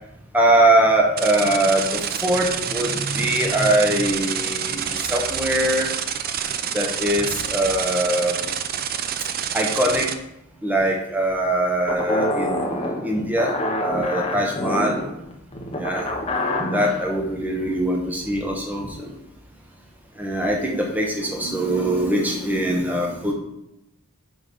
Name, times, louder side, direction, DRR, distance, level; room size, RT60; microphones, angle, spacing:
voice 1, 0.3-5.9 6.7-8.5 9.5-10.1 10.6-15.0 15.7-16.1 16.7-19.1 20.2-23.3, right 1 dB, 10° right, 0 dB, 1.0 m, -22 dB
sound 1, 1.2-10.1, right 8 dB, 45° right, 0.5 m, -27 dB
sound 2, 11.9-17.0, left 1 dB, 25° left, 1.0 m, -26 dB
6.3 x 5.0 x 5.3 m, 0.85 s
head